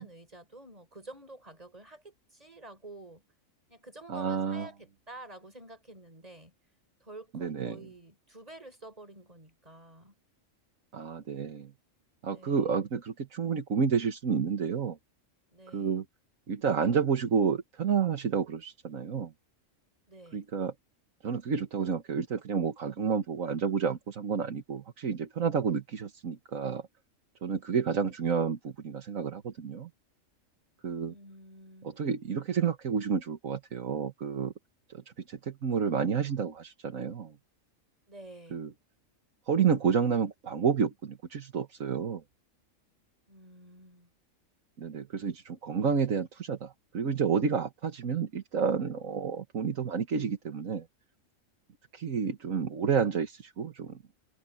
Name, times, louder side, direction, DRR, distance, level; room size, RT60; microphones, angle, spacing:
voice 1, 0.0-3.2 3.7-6.5 7.0-10.1 12.2-12.8 15.5-16.0 20.1-20.4 31.1-32.0 38.1-38.6 43.3-44.1, right 2 dB, 30° right, 5.0 m, -49 dB
voice 2, 4.1-4.7 7.3-7.8 10.9-11.7 12.2-15.0 15.7-16.0 16.5-19.3 20.3-20.7 21.2-26.8 27.4-29.9 30.8-31.1 31.8-34.5 34.9-35.0 35.3-37.3 38.5-38.7 39.5-42.2 44.8-50.8 51.9-54.0, right 6 dB, 80° right, 1.8 m, -30 dB
omnidirectional pair, 1.4 m